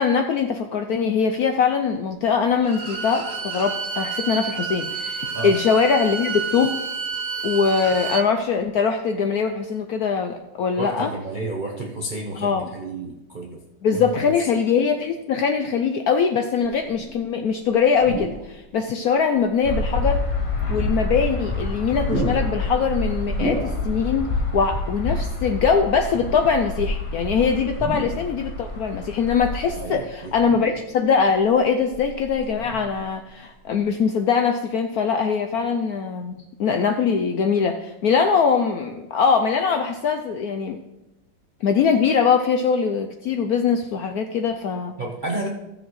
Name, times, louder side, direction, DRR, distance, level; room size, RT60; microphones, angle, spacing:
voice 1, 0.0-6.8 7.4-11.1 12.4-12.7 13.8-20.2 20.7-40.8 41.6-45.0, left 6 dB, 75° left, 5 dB, 0.9 m, -22 dB
Bowed string instrument, 2.6-8.3, right 5 dB, 80° right, 1.9 m, -30 dB
voice 2, 10.8-13.6 13.9-14.3 29.7-30.3 45.0-45.5, right 2 dB, 50° right, -1 dB, 0.5 m, -31 dB
sound 1, 16.6-17.3 17.9-18.7 19.3-19.4 20.4-21.6 21.9-24.2 24.5-24.6 25.8-26.7 27.7-28.6 29.7-31.0 31.5-33.2 33.6-33.8, equal, 35° right, 1.8 m, -33 dB
sound 2, 19.6-29.8, left 2 dB, 45° left, 0.4 m, -27 dB
15.5 x 6.9 x 3.1 m, 0.96 s
omnidirectional pair, 2.1 m